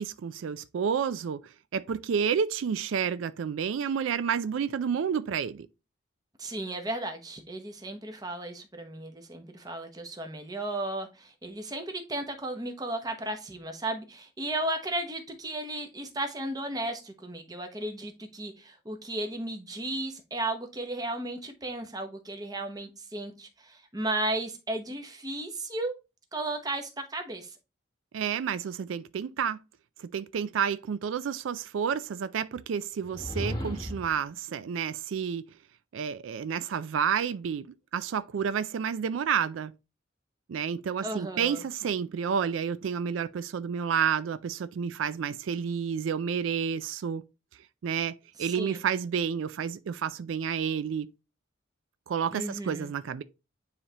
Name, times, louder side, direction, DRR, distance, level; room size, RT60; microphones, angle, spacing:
voice 1, 0.0-5.7 28.1-29.6 30.0-35.5 35.9-37.7 37.9-39.7 40.5-47.2 47.8-51.1 52.1-53.2, right 7 dB, 85° right, 0.4 m, -30 dB
voice 2, 6.4-25.9 26.3-27.6 41.0-41.6 48.4-48.8 52.3-52.9, right 1 dB, 20° right, 0.9 m, -35 dB
sound 1, 33.0-34.2, equal, 20° left, 1.0 m, -34 dB
9.6 x 3.4 x 2.9 m
head